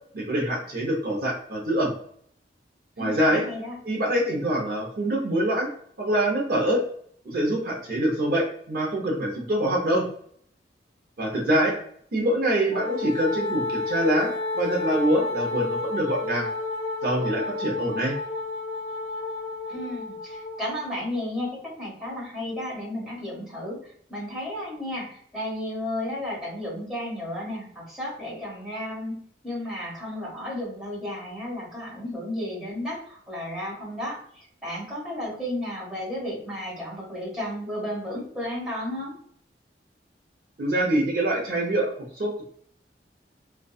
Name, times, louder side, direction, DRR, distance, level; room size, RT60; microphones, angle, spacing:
voice 1, 0.1-1.9 3.0-3.4 3.8-5.7 6.0-6.8 7.3-10.1 11.2-11.7 12.1-16.5 17.0-18.1 40.6-41.9 42.2-42.4, right 1 dB, 55° right, -1 dB, 0.6 m, -25 dB
voice 2, 3.0-3.8 19.7-29.2 29.4-39.2, left 1 dB, 5° right, -7 dB, 1.3 m, -33 dB
Wind instrument woodwind instrument, 12.7-20.7, left 3 dB, 40° left, 1.0 m, -31 dB
2.6 x 2.2 x 2.3 m, 0.63 s
head